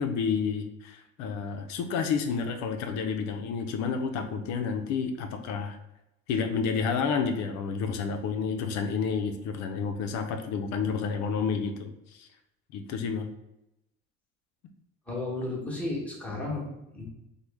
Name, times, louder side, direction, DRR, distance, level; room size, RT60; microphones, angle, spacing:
voice 1, 0.0-5.8 6.3-12.3 12.7-13.3, left 5 dB, 65° left, 5 dB, 0.5 m, -30 dB
voice 2, 15.1-17.0, left 2 dB, 5° left, -4 dB, 1.0 m, -33 dB
3.0 x 2.2 x 3.3 m, 0.88 s
cardioid pair, 110°, 30 cm